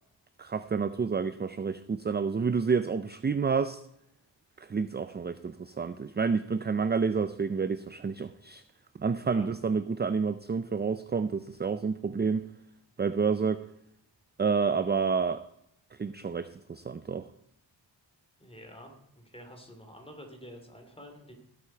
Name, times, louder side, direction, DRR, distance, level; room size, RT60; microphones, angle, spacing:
voice 1, 0.4-3.8 4.6-8.6 9.0-12.5 13.0-13.6 14.4-15.4 15.9-17.2, right 5 dB, 25° right, 12 dB, 0.4 m, -29 dB
voice 2, 18.4-21.3, equal, 10° left, 3 dB, 2.8 m, -48 dB
17.0 x 8.6 x 4.5 m, 0.77 s
wide cardioid pair, 115°, 46 cm